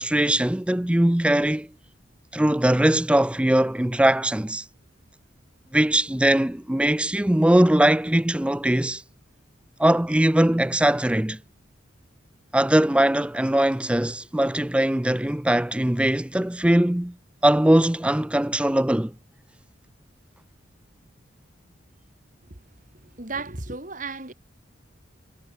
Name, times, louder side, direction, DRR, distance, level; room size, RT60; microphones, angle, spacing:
voice 1, 0.0-1.7 2.3-4.7 5.7-9.0 9.8-11.4 12.5-17.1 17.4-19.1, right 1 dB, 5° right, 0.4 m, -21 dB
voice 2, 23.0-24.3, right 3 dB, 40° right, 2.5 m, -34 dB
head